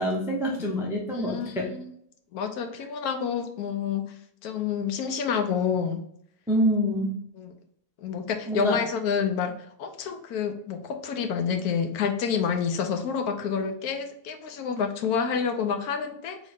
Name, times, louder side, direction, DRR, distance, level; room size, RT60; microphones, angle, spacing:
voice 1, 0.0-1.7 6.5-7.1 8.5-8.8, equal, 5° right, -1 dB, 0.3 m, -26 dB
voice 2, 1.1-1.9 2.3-4.2 4.4-6.0 7.4-7.5 8.0-16.4, left 6 dB, 75° left, 7 dB, 1.1 m, -28 dB
3.9 x 3.1 x 3.3 m, 0.67 s
omnidirectional pair, 1.7 m